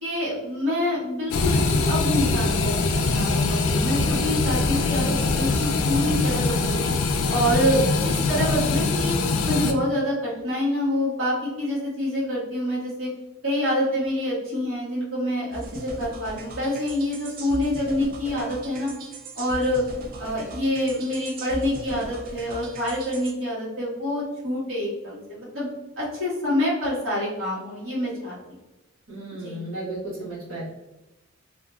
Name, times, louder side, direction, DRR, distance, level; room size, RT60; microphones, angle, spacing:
voice 1, 0.0-2.7 3.0-6.9 7.3-9.1 9.4-13.1 13.4-18.9 19.3-19.8 20.2-25.7 26.0-28.4 29.4-29.6, left 1 dB, 70° right, -9 dB, 1.4 m, -26 dB
sound 1, 1.3-9.7, left 3 dB, 80° left, 0.4 m, -23 dB
sound 2, 15.5-23.3, right 2 dB, 45° right, 0.4 m, -39 dB
voice 2, 29.1-30.6, right 2 dB, 90° right, -10 dB, 1.4 m, -34 dB
2.8 x 2.5 x 2.3 m, 1.0 s
head